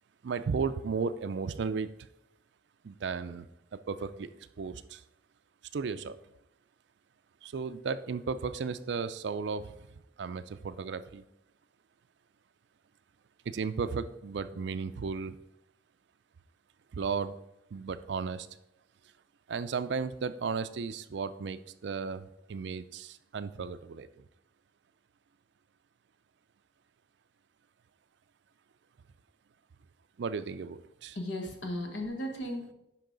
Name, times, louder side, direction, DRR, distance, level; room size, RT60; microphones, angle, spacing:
voice 1, 0.2-1.9 2.8-4.3 4.6-5.0 5.7-6.2 7.4-9.9 10.2-11.2 13.4-15.4 16.9-17.4 17.7-18.5 19.5-24.3 30.2-31.2, right 5 dB, 70° right, 12 dB, 0.4 m, -35 dB
voice 2, 31.1-32.7, left 1 dB, 80° left, 2 dB, 1.4 m, -36 dB
10.5 x 5.3 x 3.9 m, 0.87 s
head